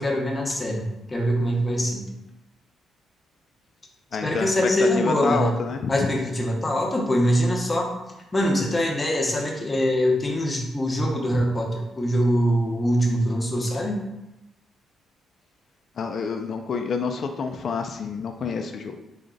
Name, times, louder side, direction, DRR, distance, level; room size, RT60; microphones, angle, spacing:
voice 1, 0.0-2.1 4.2-5.5 5.9-7.9 8.3-14.0, equal, 25° left, 0 dB, 1.0 m, -23 dB
voice 2, 4.1-4.7 5.0-6.1 16.0-19.0, left 5 dB, 55° left, 5 dB, 0.4 m, -28 dB
3.9 x 3.3 x 3.8 m, 0.92 s
cardioid pair, 90°, 0 cm